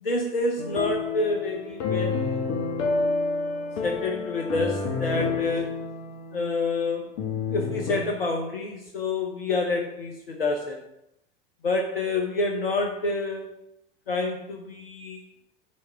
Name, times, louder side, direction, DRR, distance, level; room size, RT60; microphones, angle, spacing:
voice 1, 0.0-2.4 2.9-3.0 3.8-5.9 6.3-7.1 7.5-10.8 11.6-13.5 14.1-15.2, left 2 dB, 75° left, 2 dB, 1.0 m, -28 dB
sound 1, 0.6-8.0, left 4 dB, 45° left, 1.3 m, -29 dB
9.6 x 3.5 x 5.6 m, 0.81 s
figure-of-eight pair, 85°, 29 cm